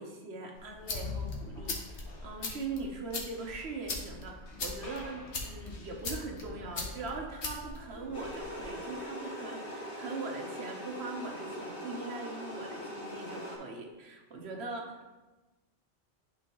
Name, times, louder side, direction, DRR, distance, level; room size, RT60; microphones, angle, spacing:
voice 1, 0.0-15.1, right 3 dB, 65° right, 2 dB, 1.2 m, -41 dB
sound 1, 0.5-8.6, left 3 dB, 85° left, 1.4 m, -40 dB
sound 2, 8.1-13.6, equal, 50° left, 2.0 m, -41 dB
11.0 x 4.3 x 3.0 m, 1.2 s
omnidirectional pair, 1.1 m